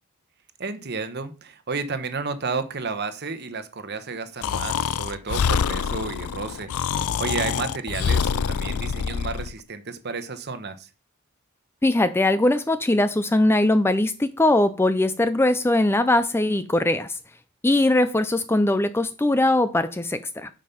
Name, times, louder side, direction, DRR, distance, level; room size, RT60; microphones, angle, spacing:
voice 1, 0.6-6.7 7.2-10.9, right 4 dB, 50° right, 1.0 m, -31 dB
Breathing, 4.4-9.5, left 7 dB, 85° left, 0.4 m, -26 dB
voice 2, 11.8-17.1 17.6-20.5, left 1 dB, 10° left, 0.4 m, -21 dB
9.1 x 5.2 x 5.7 m
head